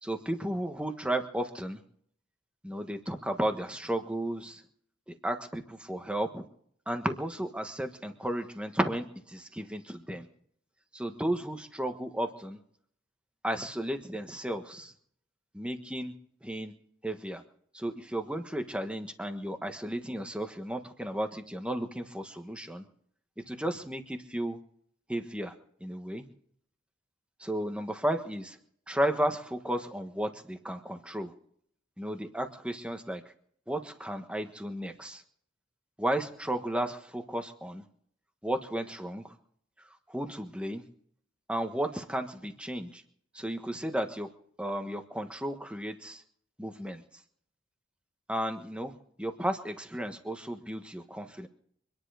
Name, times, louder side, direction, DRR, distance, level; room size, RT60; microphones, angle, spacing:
voice 1, 0.0-1.8 2.6-4.6 5.1-6.4 6.9-10.2 10.9-12.6 13.4-14.9 15.5-16.1 16.4-16.7 17.0-17.4 17.7-22.8 23.5-24.6 25.1-25.5 25.8-26.3 27.4-28.6 28.9-31.3 32.0-33.2 33.7-35.2 36.0-37.8 38.4-39.3 40.1-40.8 41.5-43.0 43.3-44.3 44.6-46.2 46.6-47.0 48.3-48.9 49.2-51.5, right 1 dB, 5° right, 6 dB, 1.3 m, -33 dB
24.5 x 10.5 x 5.0 m, 0.63 s
head